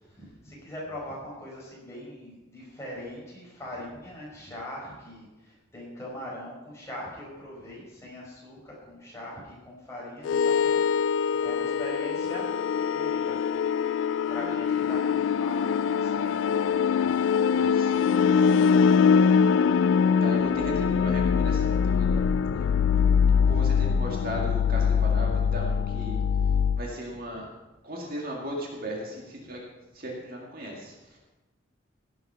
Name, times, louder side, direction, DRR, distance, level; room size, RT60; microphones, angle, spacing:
voice 1, 0.0-10.8 11.2-12.5 12.9-13.4 14.3-17.1 18.1-18.5, left 1 dB, 15° left, -5 dB, 5.1 m, -41 dB
sound 1, 10.3-26.8, left 6 dB, 75° left, 0.3 m, -23 dB
voice 2, 17.5-18.0 20.2-22.2 22.5-22.7 23.5-26.2 26.8-27.5 27.8-29.6 29.9-31.2, equal, 45° right, -1 dB, 2.1 m, -36 dB
17.0 x 7.7 x 5.7 m, 1.1 s
head